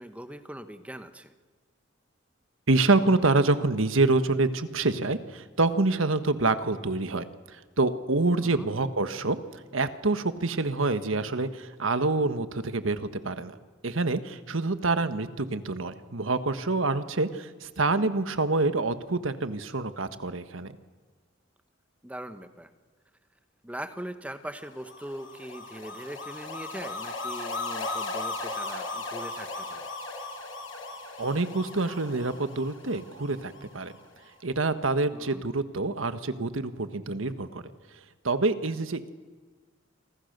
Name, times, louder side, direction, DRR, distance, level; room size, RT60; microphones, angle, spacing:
voice 1, 0.0-1.3 8.4-8.7 22.0-22.7 23.6-29.9 35.1-35.4, right 1 dB, 5° right, 9 dB, 1.3 m, -41 dB
voice 2, 2.7-9.4 9.7-13.6 13.8-20.7 31.2-33.9 34.4-37.6 38.2-39.1, right 3 dB, 90° right, 11 dB, 1.4 m, -26 dB
sound 1, 24.7-34.0, left 3 dB, 75° left, 5.2 m, -37 dB
27.5 x 25.0 x 6.8 m, 1.4 s
head